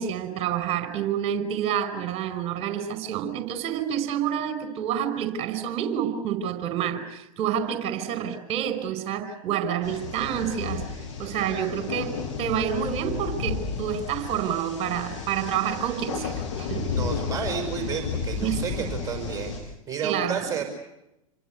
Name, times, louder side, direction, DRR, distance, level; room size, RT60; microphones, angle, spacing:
voice 1, 0.0-10.8 11.2-16.9 18.4-18.9 20.0-20.5, right 9 dB, 35° right, 9 dB, 5.1 m, -28 dB
sound 1, 9.8-19.6, left 6 dB, 55° left, 7.8 m, -32 dB
voice 2, 16.8-19.5 19.9-20.6, right 7 dB, 20° right, 3 dB, 5.6 m, -31 dB
28.0 x 23.5 x 8.2 m, 0.88 s
hypercardioid pair, 100°, 18 cm